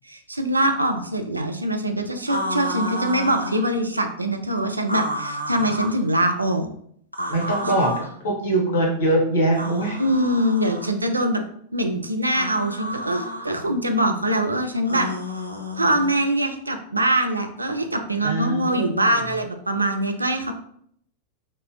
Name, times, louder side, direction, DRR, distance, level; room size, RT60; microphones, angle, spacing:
voice 1, 0.1-6.7 10.0-11.4 11.7-15.1 15.8-20.5, right 1 dB, 80° right, 5 dB, 0.3 m, -23 dB
sound 1, 2.3-3.7 4.8-6.0 7.1-8.1 9.5-10.9 12.2-13.5 14.8-16.2, equal, 90° left, 0.4 m, -30 dB
voice 2, 7.3-10.0 10.9-11.0 18.2-19.1, right 1 dB, 65° left, -1 dB, 1.0 m, -23 dB
3.5 x 2.0 x 2.6 m, 0.65 s
figure-of-eight pair, 90°, 0 cm